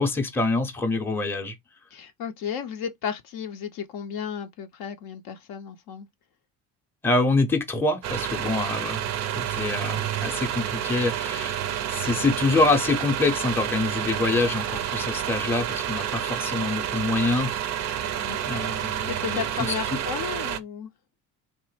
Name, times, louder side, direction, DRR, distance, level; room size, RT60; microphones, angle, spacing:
voice 1, 0.0-1.5 7.0-9.0 9.4-11.6 11.9-17.6 18.4-19.4, left 2 dB, 5° left, 0.6 m, -25 dB
voice 2, 1.9-6.1 18.2-18.4 19.0-20.9, left 7 dB, 55° left, 0.6 m, -33 dB
sound 1, 8.0-20.6, right 10 dB, 40° right, 0.4 m, -29 dB
3.1 x 2.0 x 3.1 m
hypercardioid pair, 60°, 47 cm